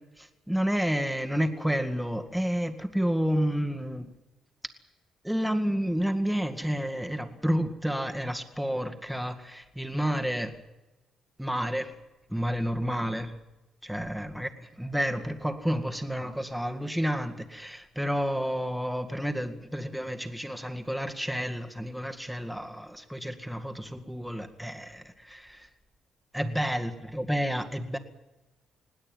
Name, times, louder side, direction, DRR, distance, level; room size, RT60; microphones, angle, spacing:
voice 1, 0.2-4.1 5.2-10.6 11.4-11.9 12.3-13.4 13.8-25.7 26.3-28.0, equal, ahead, 6 dB, 2.0 m, -30 dB
20.5 x 16.5 x 9.2 m, 1.0 s
cardioid pair, 90°, 0 cm